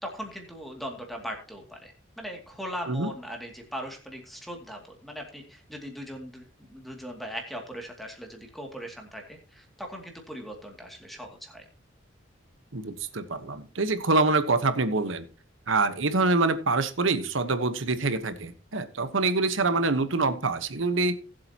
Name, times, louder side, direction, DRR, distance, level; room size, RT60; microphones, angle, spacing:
voice 1, 0.0-11.7, equal, ahead, 2 dB, 2.4 m, -39 dB
voice 2, 12.7-15.3 15.7-21.2, right 3 dB, 80° right, 11 dB, 1.2 m, -25 dB
19.5 x 7.7 x 2.9 m, 0.37 s
head